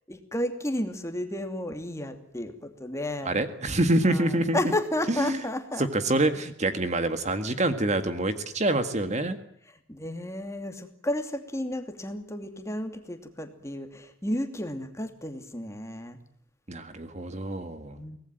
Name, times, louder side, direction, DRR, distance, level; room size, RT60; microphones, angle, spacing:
voice 1, 0.1-3.3 4.0-5.9 9.9-16.2 18.0-18.2, left 1 dB, 15° left, 7 dB, 2.7 m, -32 dB
voice 2, 3.3-4.6 5.1-5.4 5.8-9.4 16.7-18.0, right 2 dB, 35° right, 9 dB, 1.8 m, -26 dB
24.0 x 19.0 x 9.1 m, 0.67 s
head